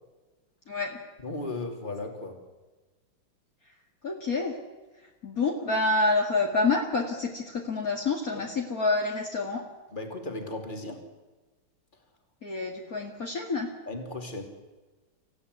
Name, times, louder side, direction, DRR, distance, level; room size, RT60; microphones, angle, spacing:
voice 1, 0.7-1.0 4.0-4.6 5.2-9.7 12.4-13.7, left 3 dB, 45° left, 0 dB, 2.6 m, -27 dB
voice 2, 1.2-2.4 8.3-8.4 9.9-11.0 13.9-14.4, left 2 dB, 25° left, 4 dB, 3.1 m, -36 dB
26.0 x 16.0 x 9.6 m, 1.2 s
omnidirectional pair, 2.2 m